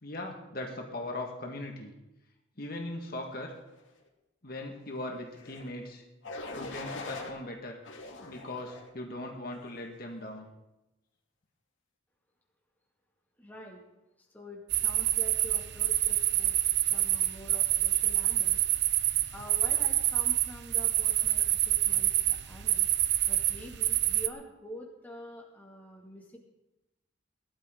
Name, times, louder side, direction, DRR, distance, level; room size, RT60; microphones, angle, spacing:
voice 1, 0.0-1.9 2.6-3.5 4.4-6.0 6.6-7.8 8.2-10.5, left 1 dB, 50° left, 1 dB, 1.9 m, -39 dB
sound 1, 5.3-5.7 6.2-7.3 7.8-8.9 9.5-9.8, left 3 dB, 75° left, 2.6 m, -42 dB
voice 2, 13.4-13.8 14.2-16.6 16.9-18.6 19.3-22.9 23.3-26.4, equal, 10° left, -1 dB, 2.4 m, -46 dB
sound 2, 14.7-24.3, right 14 dB, 55° right, 0.6 m, -27 dB
19.5 x 12.5 x 3.9 m, 0.95 s
head